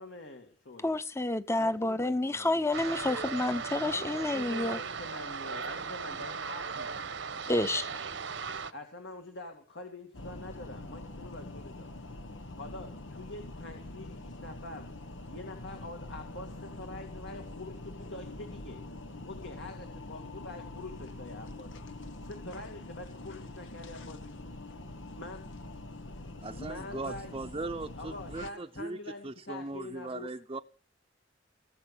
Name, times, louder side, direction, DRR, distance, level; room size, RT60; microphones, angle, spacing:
voice 1, 0.0-1.0 1.6-2.7 3.8-7.2 8.7-11.9 12.6-14.9 15.3-18.8 19.2-21.7 22.2-24.4 25.1-25.4 26.5-27.3 28.0-30.3, left 2 dB, 70° left, 2.3 m, -45 dB
voice 2, 0.8-4.8 7.5-7.9, left 2 dB, 15° left, 0.8 m, -29 dB
sound 1, 2.7-8.7, right 5 dB, 80° right, 1.1 m, -37 dB
sound 2, 10.1-28.5, left 2 dB, 90° left, 1.4 m, -44 dB
voice 3, 26.4-29.0 29.2-30.6, right 2 dB, 25° right, 0.7 m, -39 dB
19.0 x 6.8 x 8.5 m
head